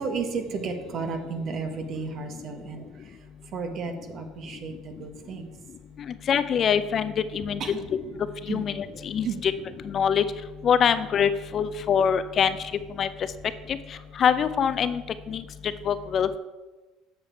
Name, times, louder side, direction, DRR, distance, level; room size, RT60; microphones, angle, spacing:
voice 1, 0.0-5.5 7.6-7.9 8.5-8.6 8.9-9.4, right 5 dB, 50° right, 6 dB, 1.3 m, -33 dB
voice 2, 6.3-7.6 8.5-9.5 9.8-10.2 10.6-12.5 13.0-13.1 13.7-13.8 14.2-15.0 15.3-15.4 15.9-16.4, left 7 dB, 45° left, 13 dB, 0.4 m, -24 dB
7.6 x 6.8 x 4.5 m, 1.2 s
supercardioid pair, 100°, 0 cm